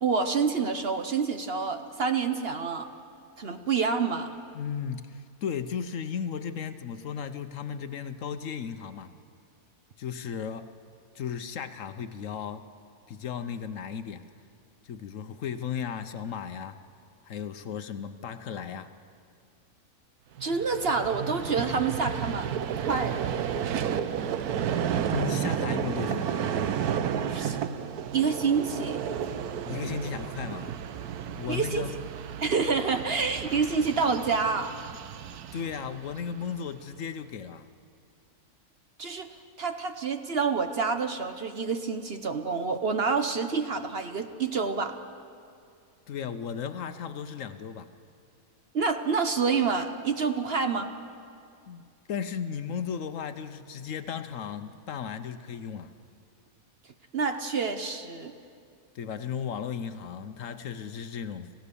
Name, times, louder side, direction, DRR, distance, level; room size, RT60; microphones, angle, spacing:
voice 1, 0.0-2.9 3.4-4.3 20.4-23.3 27.3-27.6 28.1-29.0 31.5-31.8 32.4-34.7 39.0-39.3 39.6-44.9 48.7-50.9 57.1-58.3, right 5 dB, 50° right, 7 dB, 1.0 m, -28 dB
voice 2, 4.5-9.1 10.0-10.7 11.1-12.7 13.1-14.3 14.8-16.8 17.2-18.9 25.1-26.3 29.7-30.8 31.4-32.0 35.5-37.7 46.1-47.9 51.7-55.9 58.9-61.5, left 7 dB, 65° left, 10 dB, 1.0 m, -35 dB
Vehicle, 20.4-36.7, right 8 dB, 90° right, 1.3 m, -32 dB
26.5 x 16.0 x 6.9 m, 2.4 s
omnidirectional pair, 1.6 m